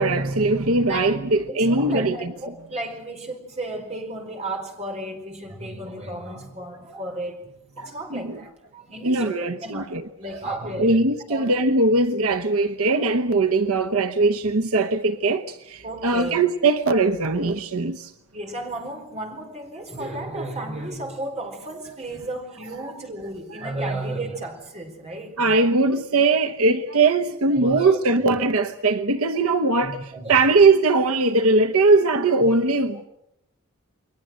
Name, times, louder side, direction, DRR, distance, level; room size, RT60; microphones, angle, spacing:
voice 1, 0.0-2.3 7.8-8.4 9.0-10.0 10.8-15.4 16.0-18.0 23.6-23.9 25.4-30.0 30.3-33.1, right 3 dB, 80° right, 1.0 m, -20 dB
voice 2, 0.9-11.5 13.0-13.1 15.8-16.4 18.3-25.6 27.6-28.4 29.8-30.5, right 1 dB, 30° right, 4.8 m, -34 dB
29.5 x 22.0 x 6.4 m
head